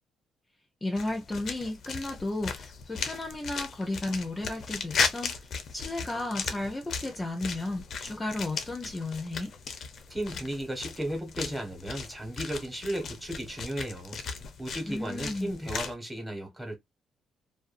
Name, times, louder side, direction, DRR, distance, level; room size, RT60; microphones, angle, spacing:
voice 1, 0.8-9.5 14.9-15.6, left 2 dB, 20° left, 0.6 m, -34 dB
sound 1, 1.0-15.9, left 5 dB, 60° left, 0.6 m, -36 dB
voice 2, 10.1-14.2 14.6-16.8, right 1 dB, 5° right, 1.2 m, -35 dB
2.6 x 2.3 x 2.5 m
cardioid pair, 90°, 0 cm